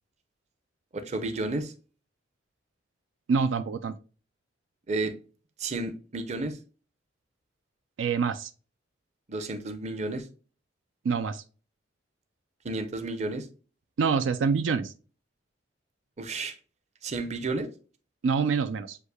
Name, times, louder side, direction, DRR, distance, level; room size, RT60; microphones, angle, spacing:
voice 1, 0.9-1.7 4.9-5.2 5.6-6.6 9.3-10.2 12.6-13.5 16.2-16.5 17.0-17.7, right 2 dB, 35° right, 0.6 m, -32 dB
voice 2, 3.3-3.9 8.0-8.5 11.0-11.4 14.0-14.9 18.2-19.0, right 5 dB, 80° right, 0.4 m, -26 dB
7.9 x 2.7 x 2.2 m
head